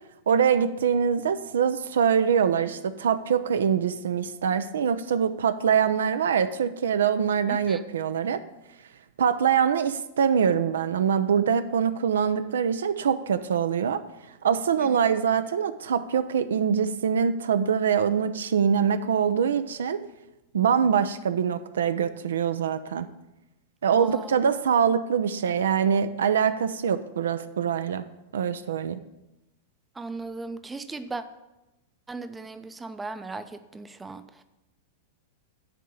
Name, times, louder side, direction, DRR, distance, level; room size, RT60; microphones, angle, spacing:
voice 1, 0.3-8.4 9.2-14.0 14.4-20.0 20.5-23.1 23.8-28.0 28.3-29.0, right 7 dB, 70° right, 12 dB, 0.4 m, -24 dB
voice 2, 7.5-7.8 23.9-24.3 30.0-31.2 32.1-33.4 33.7-34.2, right 3 dB, 10° right, 10 dB, 0.5 m, -37 dB
10.0 x 3.7 x 6.9 m, 0.97 s
figure-of-eight pair, 95°, 0 cm